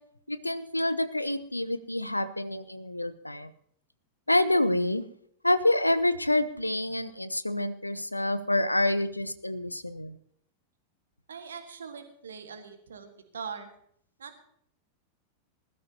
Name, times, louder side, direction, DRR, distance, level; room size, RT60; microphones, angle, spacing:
voice 1, 0.3-3.5 4.3-5.0 5.4-10.2, left 1 dB, 85° left, 14 dB, 0.6 m, -27 dB
voice 2, 11.3-13.7 14.2-14.4, right 6 dB, 70° right, 7 dB, 1.7 m, -42 dB
20.0 x 13.0 x 2.9 m, 0.66 s
figure-of-eight pair, 90°, 0 cm